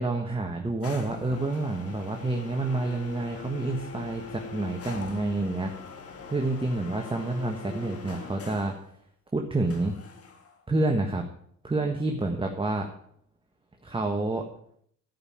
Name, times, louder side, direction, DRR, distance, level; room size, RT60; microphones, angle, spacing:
voice 1, 0.0-5.8 6.3-8.8 9.3-9.9 10.7-11.2 11.6-12.9 13.8-14.5, right 2 dB, 15° right, 3 dB, 1.5 m, -28 dB
sound 1, 0.8-8.8 9.7-10.6, left 4 dB, 50° left, 1.9 m, -42 dB
13.0 x 5.6 x 8.6 m, 0.67 s
cardioid pair, 90°, 30 cm